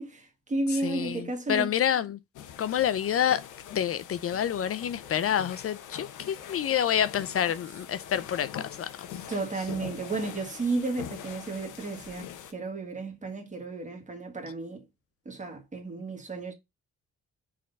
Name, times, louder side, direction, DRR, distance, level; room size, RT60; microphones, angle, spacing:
voice 1, 0.0-1.7 9.3-14.8 15.3-16.5, right 3 dB, 25° right, 1.9 m, -33 dB
voice 2, 0.8-2.2 2.6-3.4 3.7-9.1, left 9 dB, 50° left, 0.5 m, -28 dB
sound 1, 2.3-12.5, left 9 dB, 85° left, 1.1 m, -43 dB
5.0 x 4.2 x 5.3 m
cardioid pair, 90°, 30 cm